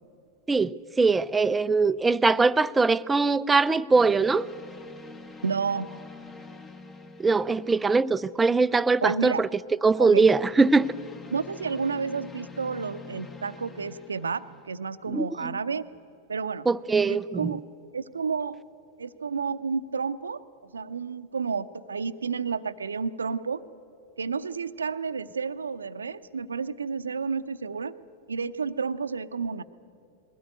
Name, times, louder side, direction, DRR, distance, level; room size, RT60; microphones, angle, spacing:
voice 1, 0.5-4.4 7.2-9.5 9.8-10.9 15.1-15.5 16.7-17.6, right 4 dB, 15° right, 17 dB, 0.5 m, -22 dB
sound 1, 3.9-8.4 9.9-14.7, left 4 dB, 20° left, 1.3 m, -45 dB
voice 2, 5.4-6.0 9.0-9.4 10.0-10.2 11.3-15.9 16.3-16.7 17.1-17.6 17.9-18.6 19.0-23.6 24.2-27.9 28.3-29.6, right 5 dB, 75° right, 13 dB, 0.7 m, -31 dB
21.5 x 17.0 x 9.6 m, 2.6 s
figure-of-eight pair, 90°, 0 cm